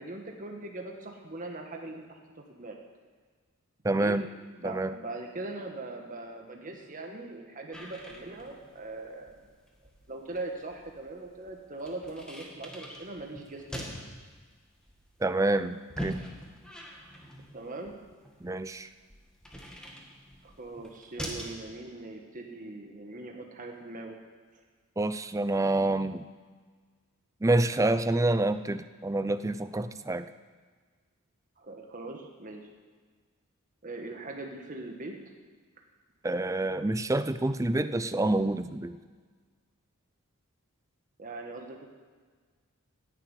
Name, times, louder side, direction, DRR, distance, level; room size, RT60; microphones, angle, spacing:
voice 1, 0.0-2.2 2.6-2.8 4.0-4.2 4.6-9.5 10.1-13.9 17.5-17.9 20.4-24.2 31.6-32.7 33.8-35.1 41.2-41.9, right 2 dB, 35° right, 2 dB, 1.4 m, -41 dB
voice 2, 3.8-4.2 4.6-4.9 15.2-16.2 18.4-18.9 25.0-26.2 27.4-30.3 36.2-39.0, right 2 dB, 15° right, 12 dB, 0.4 m, -27 dB
sound 1, 7.7-21.6, equal, 5° left, 1.8 m, -44 dB
15.0 x 7.3 x 9.1 m, 1.5 s
head